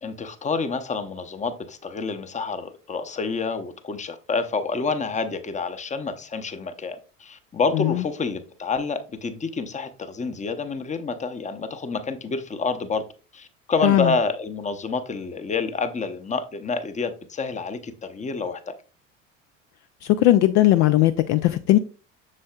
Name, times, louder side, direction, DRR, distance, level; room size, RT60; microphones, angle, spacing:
voice 1, 0.0-13.0 13.3-18.7, left 4 dB, 20° left, 0.8 m, -28 dB
voice 2, 7.7-8.0 13.8-14.1 20.0-21.8, left 14 dB, 50° left, 0.5 m, -18 dB
7.5 x 6.3 x 2.3 m
hypercardioid pair, 70°, 37 cm